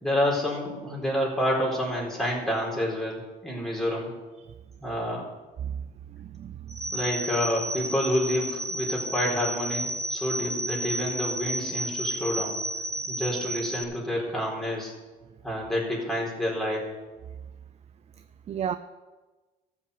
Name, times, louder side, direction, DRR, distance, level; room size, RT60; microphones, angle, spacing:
voice 1, 0.0-4.1 4.8-5.3 6.9-12.6 13.1-14.9 15.4-16.9, left 1 dB, 5° left, -4 dB, 4.3 m, -28 dB
voice 2, 6.1-7.0 18.5-18.7, right 9 dB, 40° right, 11 dB, 0.5 m, -34 dB
sound 1, 6.7-13.8, right 1 dB, 15° right, 1.7 m, -32 dB
13.5 x 6.0 x 8.2 m, 1.2 s
cardioid pair, 110°, 17 cm